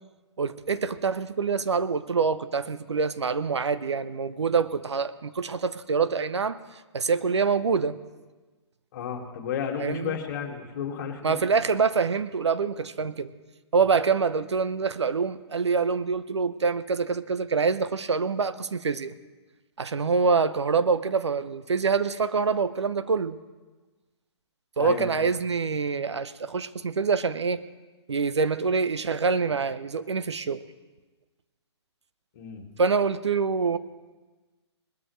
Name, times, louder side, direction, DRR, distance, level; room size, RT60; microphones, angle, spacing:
voice 1, 0.4-6.6 6.9-8.0 9.8-10.2 11.2-13.3 13.7-19.1 19.8-23.4 24.8-27.6 28.1-30.6 32.8-33.8, right 5 dB, 75° right, 13 dB, 0.8 m, -25 dB
voice 2, 8.9-11.4 24.8-25.2 32.4-32.6, left 8 dB, 45° left, 2 dB, 2.1 m, -32 dB
20.5 x 13.0 x 3.2 m, 1.2 s
figure-of-eight pair, 130°, 15 cm